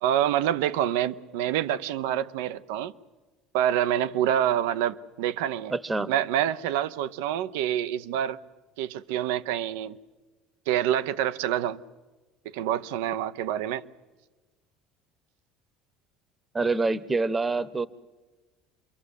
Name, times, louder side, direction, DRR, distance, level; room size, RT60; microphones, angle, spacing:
voice 1, 0.0-2.9 3.5-5.7 6.1-8.4 8.8-10.0 10.7-11.8 12.5-13.8, right 11 dB, 85° right, 0.8 m, -27 dB
voice 2, 5.7-6.1 16.5-17.9, right 3 dB, 20° right, 1.0 m, -26 dB
27.5 x 23.0 x 8.2 m
supercardioid pair, 100°, 0 cm